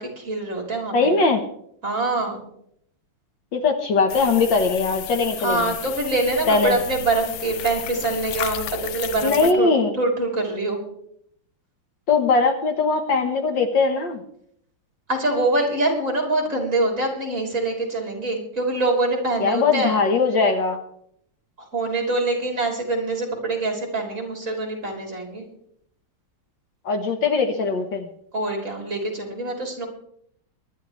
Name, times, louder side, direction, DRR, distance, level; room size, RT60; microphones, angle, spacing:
voice 1, 0.0-1.2 1.8-2.4 5.4-9.7 9.9-10.8 15.1-20.0 21.7-25.4 28.3-29.9, right 2 dB, 35° right, 0 dB, 3.6 m, -24 dB
voice 2, 0.9-1.4 3.5-5.7 6.5-6.7 9.2-9.9 12.1-14.2 19.4-20.8 26.8-28.1, left 4 dB, 60° left, 5 dB, 1.7 m, -20 dB
sound 1, 4.1-9.5, left 11 dB, 75° left, 1.6 m, -33 dB
23.5 x 11.0 x 3.1 m, 0.70 s
omnidirectional pair, 2.4 m